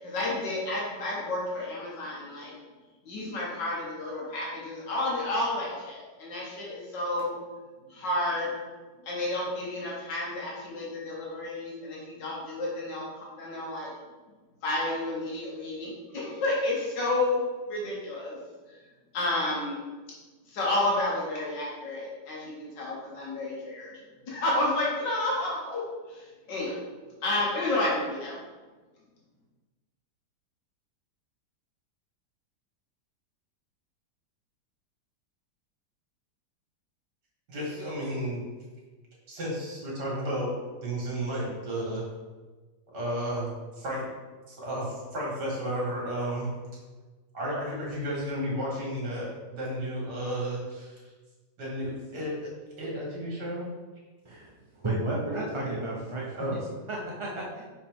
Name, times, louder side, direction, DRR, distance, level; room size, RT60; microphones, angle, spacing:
voice 1, 0.0-2.5 3.1-7.4 7.9-8.5 9.1-13.0 13.4-13.9 14.6-17.4 17.7-18.4 19.1-19.8 20.5-23.9 24.3-25.8 26.5-26.7 27.2-28.4, left 2 dB, 90° left, -4 dB, 2.0 m, -30 dB
voice 2, 37.5-38.4 39.3-40.5 40.8-42.0 42.9-44.0 44.5-46.5 47.3-51.0 51.6-52.5 52.8-53.7 56.4-56.6, equal, 70° right, -4 dB, 2.5 m, -32 dB
voice 3, 54.8-56.3 56.9-57.6, right 2 dB, 45° right, -4 dB, 0.3 m, -32 dB
5.7 x 4.9 x 3.6 m, 1.3 s
omnidirectional pair, 1.9 m